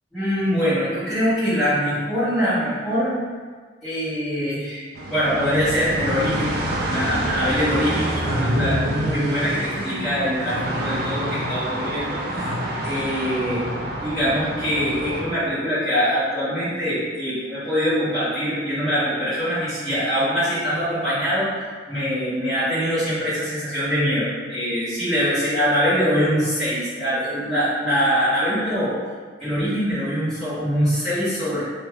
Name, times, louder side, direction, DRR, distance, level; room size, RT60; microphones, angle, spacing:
voice 1, 0.1-3.1 3.8-6.5 6.8-12.6 12.8-13.6 14.0-21.5 21.9-28.9 29.4-31.6, equal, ahead, -18 dB, 1.5 m, -23 dB
sound 1, 4.9-15.2, right 1 dB, 55° right, 0.4 m, -27 dB
2.9 x 2.4 x 2.9 m, 1.5 s
head